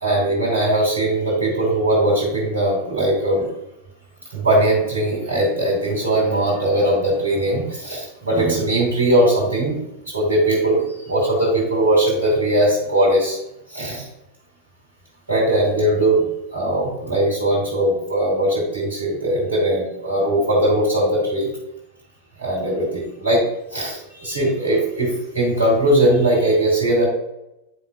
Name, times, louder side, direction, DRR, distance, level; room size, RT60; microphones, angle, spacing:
voice 1, 0.0-3.5 4.3-13.4 13.7-14.1 15.3-21.5 22.4-27.0, right 1 dB, 70° right, -3 dB, 2.3 m, -20 dB
9.7 x 5.6 x 2.4 m, 0.86 s
figure-of-eight pair, 90°, 0 cm